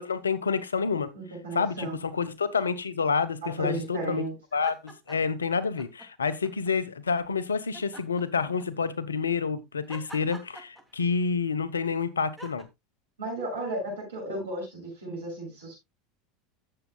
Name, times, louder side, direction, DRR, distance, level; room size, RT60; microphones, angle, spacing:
voice 1, 0.0-1.1 1.5-4.2 4.5-12.7, left 5 dB, 85° left, 0.9 m, -28 dB
voice 2, 1.1-2.0 3.4-4.4 13.2-15.8, right 1 dB, 80° right, 7.3 m, -34 dB
sound 1, 4.5-5.4 5.8-6.7 7.7-8.9 9.9-11.3 12.4-12.6, right 1 dB, 5° right, 2.7 m, -46 dB
16.0 x 7.7 x 2.3 m
hypercardioid pair, 80°, 0 cm